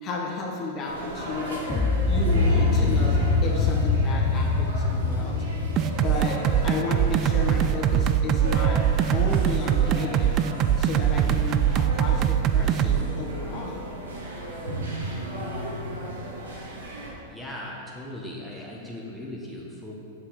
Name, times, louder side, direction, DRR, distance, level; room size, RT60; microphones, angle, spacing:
voice 1, 0.0-1.6 2.1-5.4 6.0-6.4 6.6-8.8 9.1-10.4 10.8-13.8, left 3 dB, 35° left, -2 dB, 1.3 m, -33 dB
sound 1, 0.8-17.1, right 1 dB, 75° right, 1.7 m, -36 dB
sound 2, 1.7-7.7, left 3 dB, 20° left, 0.8 m, -24 dB
sound 3, 5.8-13.0, right 9 dB, 35° right, 0.3 m, -22 dB
voice 2, 17.3-19.9, left 1 dB, ahead, -4 dB, 1.4 m, -38 dB
7.8 x 6.3 x 4.3 m, 2.6 s
figure-of-eight pair, 100°, 0 cm